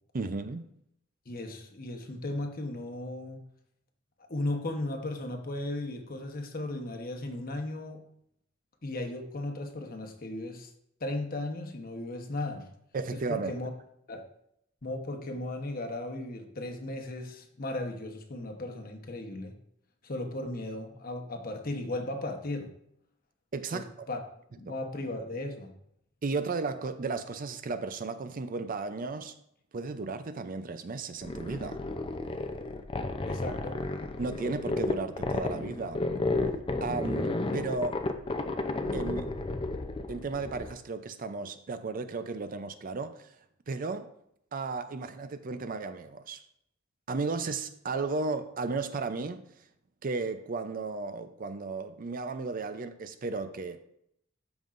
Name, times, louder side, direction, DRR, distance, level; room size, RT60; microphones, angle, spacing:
voice 1, 0.1-0.6 12.9-13.5 23.5-24.1 24.7-24.8 26.2-29.3 29.7-31.8 34.2-36.0 36.8-38.0 38.9-39.3 40.1-43.3 43.7-44.1 44.5-46.4 47.1-49.4 50.0-53.8, right 3 dB, 45° right, 0.5 m, -34 dB
voice 2, 1.3-3.4 4.3-8.1 8.8-10.7 11.0-12.7 13.1-13.7 14.1-14.3 14.8-19.5 20.0-22.7 23.7-24.2 24.6-25.7 33.2-33.8, left 2 dB, 45° left, 1.0 m, -36 dB
sound 1, 31.2-40.7, left 2 dB, 25° left, 0.5 m, -32 dB
13.0 x 5.4 x 2.5 m
head